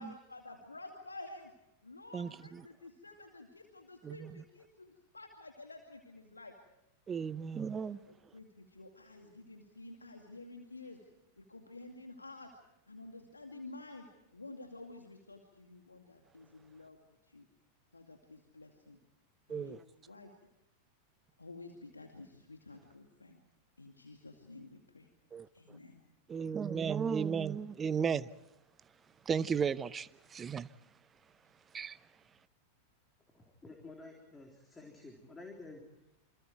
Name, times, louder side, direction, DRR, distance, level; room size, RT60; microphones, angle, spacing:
voice 1, 0.0-1.5 1.8-6.5 7.7-11.0 11.5-12.5 12.9-14.1 14.3-17.0 17.2-17.5 17.9-19.0 19.5-20.3 21.4-23.4 23.8-25.1 25.5-26.0, left 2 dB, 80° left, 2.3 m, -51 dB
voice 2, 7.1-8.0 19.5-19.8 25.3-25.5 26.3-28.3 29.3-30.7 31.7-32.0, right 6 dB, 20° right, 0.8 m, -34 dB
voice 3, 33.3-35.8, left 3 dB, 15° left, 3.7 m, -51 dB
28.0 x 26.5 x 4.6 m
figure-of-eight pair, 90°, 0 cm